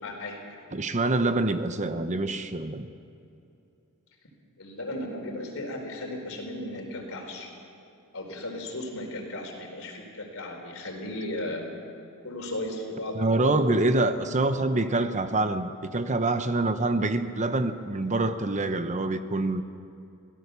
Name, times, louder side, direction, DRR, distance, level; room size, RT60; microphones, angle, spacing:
voice 1, 0.0-0.5 4.6-7.5 8.1-11.7 12.2-13.9 15.0-15.2, left 1 dB, 65° left, 3 dB, 4.1 m, -35 dB
voice 2, 0.7-2.9 13.1-19.6, right 2 dB, 35° right, 9 dB, 0.9 m, -26 dB
24.0 x 17.0 x 6.9 m, 2.6 s
head